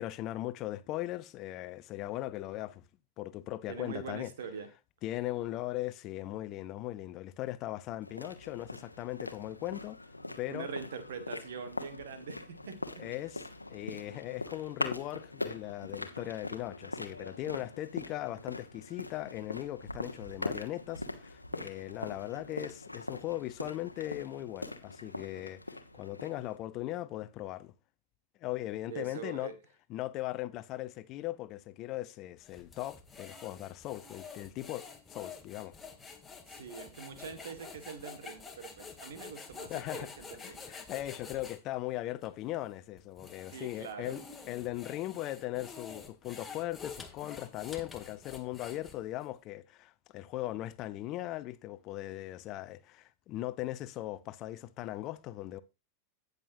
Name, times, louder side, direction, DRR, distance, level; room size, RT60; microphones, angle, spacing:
voice 1, 0.0-2.9 3.2-4.3 5.0-10.0 10.4-10.7 13.0-13.4 13.7-25.6 25.9-27.7 28.4-29.5 29.9-34.9 35.1-35.8 39.7-40.1 40.4-55.6, left 15 dB, 40° left, 0.7 m, -39 dB
voice 2, 3.7-4.7 10.5-13.0 28.9-29.6 36.5-40.6 43.5-44.2, right 6 dB, 60° right, 1.7 m, -43 dB
sound 1, 8.0-26.6, left 2 dB, 85° left, 1.1 m, -42 dB
sound 2, 32.4-41.6 42.2-42.3 43.0-49.2, left 5 dB, 10° left, 1.8 m, -48 dB
17.5 x 6.7 x 2.7 m
figure-of-eight pair, 90°, 0 cm